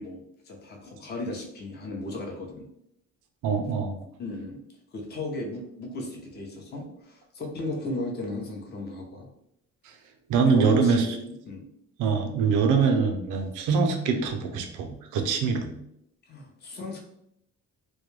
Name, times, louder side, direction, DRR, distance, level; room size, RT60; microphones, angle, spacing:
voice 1, 0.0-2.7 4.2-4.6 4.9-9.3 10.5-11.6 16.3-17.0, left 1 dB, 35° left, 1 dB, 0.6 m, -35 dB
voice 2, 3.4-4.0 10.3-11.1 12.0-14.9 15.1-15.8, right 5 dB, 85° right, 5 dB, 0.5 m, -23 dB
2.2 x 2.1 x 3.0 m, 0.77 s
cardioid pair, 90°, 30 cm